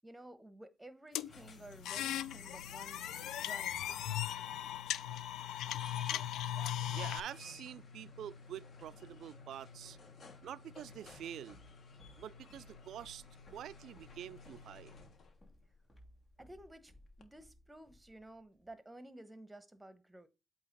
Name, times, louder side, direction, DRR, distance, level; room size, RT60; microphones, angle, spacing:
voice 1, 0.0-4.1 16.4-16.9 17.2-20.3, right 1 dB, 10° right, 1.0 m, -54 dB
sound 1, 1.1-15.5 17.2-17.3, left 4 dB, 50° left, 1.3 m, -55 dB
sound 2, 1.2-7.2, left 11 dB, 85° left, 0.3 m, -38 dB
voice 2, 6.9-10.0 10.4-11.6 12.2-13.2 13.5-14.9, right 10 dB, 75° right, 0.3 m, -47 dB
Walk footsteps, 11.4-18.7, left 1 dB, 15° left, 2.9 m, -63 dB
8.2 x 2.8 x 5.3 m
cardioid pair, 90°, 0 cm